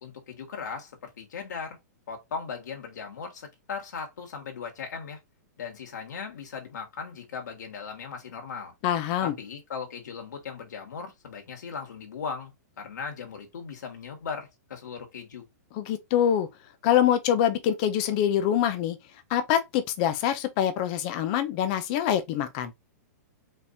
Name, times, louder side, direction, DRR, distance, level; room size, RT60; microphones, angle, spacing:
voice 1, 0.0-1.8 2.1-5.2 5.6-8.7 9.2-15.5, left 6 dB, 80° left, 1.8 m, -38 dB
voice 2, 8.8-9.3 15.7-16.5 16.8-19.0 19.3-22.7, left 10 dB, 25° left, 0.5 m, -25 dB
4.4 x 3.5 x 2.7 m
hypercardioid pair, 180°, 9 cm